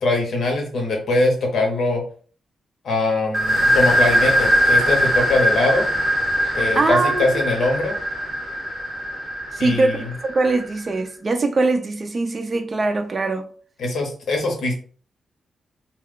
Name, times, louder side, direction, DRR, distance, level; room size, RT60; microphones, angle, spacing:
voice 1, 0.0-2.0 2.8-5.9 6.5-8.0 9.6-10.1 13.8-14.7, left 2 dB, 65° left, 0.9 m, -22 dB
sound 1, 3.3-10.8, equal, 5° right, 0.7 m, -21 dB
voice 2, 6.4-7.4 9.5-10.0 10.2-13.5, right 3 dB, 30° right, 0.3 m, -22 dB
2.3 x 2.2 x 3.6 m
wide cardioid pair, 135°, 0 cm